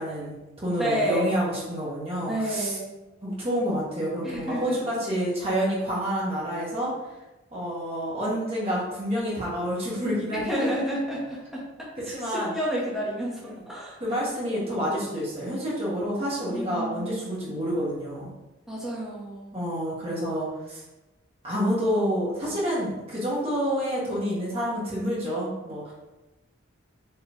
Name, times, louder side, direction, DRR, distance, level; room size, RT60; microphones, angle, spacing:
voice 1, 0.0-2.8 3.2-6.9 7.5-10.7 12.0-12.6 13.4-13.6 14.0-18.3 19.5-20.8 21.4-25.9, equal, 30° right, -7 dB, 1.4 m, -28 dB
voice 2, 0.8-1.3 2.3-2.9 4.2-4.8 10.4-11.6 12.1-14.0 16.5-17.4 18.7-19.5, equal, ahead, -6 dB, 1.1 m, -30 dB
4.5 x 3.2 x 3.5 m, 1.0 s
head